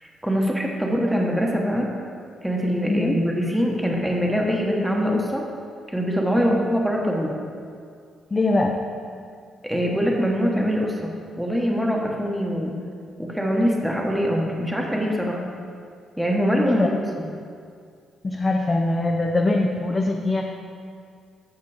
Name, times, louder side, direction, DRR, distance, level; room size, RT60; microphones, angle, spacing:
voice 1, 0.0-1.9 2.4-5.5 5.9-7.3 9.6-12.8 13.2-15.4 16.2-17.2, equal, 5° right, -1 dB, 1.2 m, -23 dB
voice 2, 8.3-8.8 16.7-16.9 18.2-20.5, left 2 dB, 25° left, 1 dB, 0.6 m, -22 dB
8.7 x 5.9 x 4.9 m, 2.2 s
cardioid pair, 90°, 0 cm